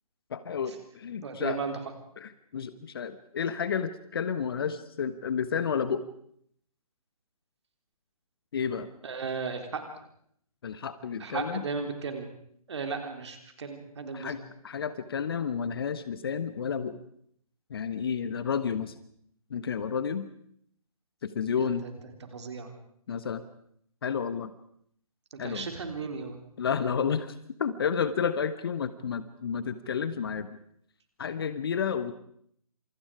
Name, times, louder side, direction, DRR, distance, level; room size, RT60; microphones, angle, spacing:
voice 1, 0.3-1.6 2.2-6.0 8.5-8.9 10.6-11.6 14.1-17.0 17.7-18.9 19.5-20.3 21.2-21.8 23.1-23.4 24.0-24.5 25.4-25.7 26.6-30.6 31.2-32.1, left 7 dB, 40° left, 13 dB, 1.3 m, -31 dB
voice 2, 1.2-1.8 9.0-9.8 11.2-12.3 12.7-14.4 21.5-21.9 22.3-22.7 25.3-26.4, right 4 dB, 50° right, 5 dB, 3.8 m, -35 dB
28.0 x 27.5 x 5.0 m, 0.66 s
figure-of-eight pair, 145°, 19 cm